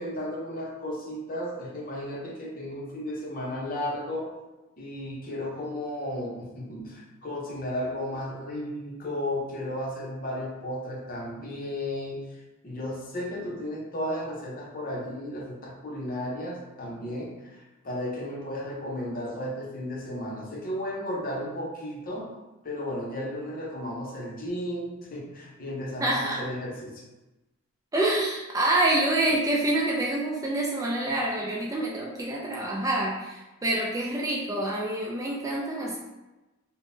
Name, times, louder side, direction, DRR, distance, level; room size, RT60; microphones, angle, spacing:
voice 1, 0.0-4.3 4.8-12.3 12.6-17.6 17.8-22.3 22.6-27.0, left 1 dB, 45° left, -3 dB, 0.7 m, -34 dB
voice 2, 26.0-26.4 27.9-36.0, right 1 dB, 15° right, -3 dB, 0.3 m, -27 dB
3.6 x 2.1 x 2.6 m, 1.1 s
head